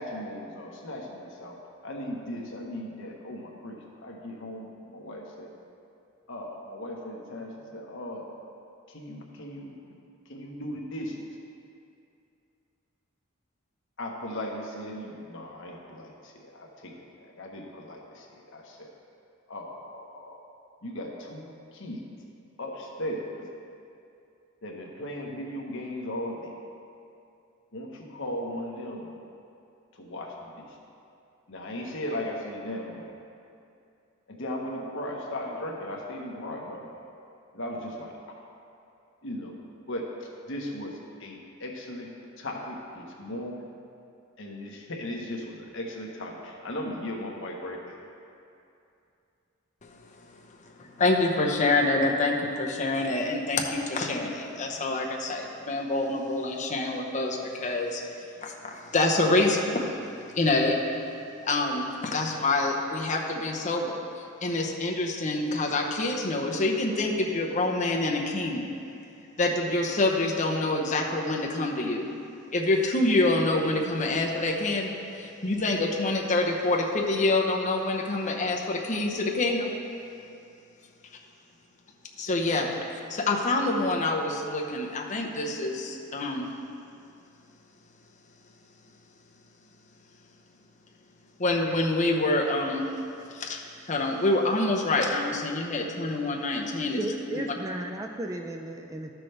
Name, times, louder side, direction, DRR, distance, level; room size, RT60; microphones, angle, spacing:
voice 1, 0.0-1.6 1.8-5.5 6.3-8.3 8.9-9.7 10.3-11.3 14.0-18.9 19.5-20.4 20.8-22.0 22.6-23.5 24.6-26.5 27.7-29.1 29.9-30.8 31.5-33.1 34.3-36.9 37.5-38.4 39.2-39.5 39.9-42.1 42.4-43.7 44.4-48.0, left 1 dB, 65° left, -1 dB, 1.1 m, -37 dB
voice 2, 50.8-58.0 58.4-59.9 60.2-60.8 61.4-64.0 64.4-68.6 69.4-72.1 72.5-79.7 82.2-86.5 91.4-92.9 93.3-93.6 93.9-97.0, left 2 dB, 35° left, 0 dB, 0.8 m, -26 dB
voice 3, 97.0-99.1, right 1 dB, 15° right, 3 dB, 0.3 m, -34 dB
12.5 x 6.1 x 3.3 m, 2.6 s
head